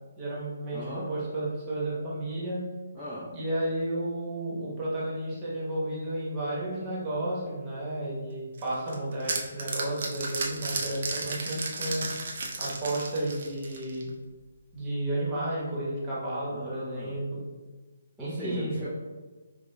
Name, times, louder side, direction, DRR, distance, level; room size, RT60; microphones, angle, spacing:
voice 1, 0.2-2.6 3.3-12.0 12.6-14.1 14.7-17.4 18.2-18.7, right 1 dB, 20° right, -6 dB, 1.1 m, -32 dB
voice 2, 0.7-1.0 2.9-3.3 14.1-14.2 16.5-17.2 18.2-18.9, equal, 5° right, -14 dB, 0.6 m, -38 dB
sound 1, 8.6-14.1, right 3 dB, 55° right, 0.5 m, -34 dB
4.8 x 2.2 x 2.2 m, 1.2 s
hypercardioid pair, 150°, 0 cm